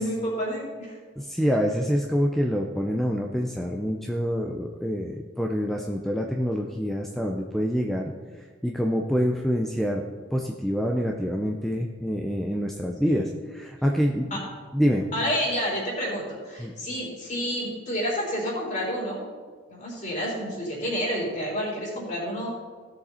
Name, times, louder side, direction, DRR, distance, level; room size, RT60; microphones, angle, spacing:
voice 1, 0.0-1.0 13.0-13.3 14.3-14.4 15.1-19.2 19.7-22.5, equal, 40° left, -4 dB, 4.0 m, -29 dB
voice 2, 1.2-8.1 8.6-10.0 10.3-14.3 14.7-15.1 16.6-16.7, equal, ahead, 1 dB, 0.6 m, -26 dB
16.5 x 6.8 x 4.3 m, 1.5 s
head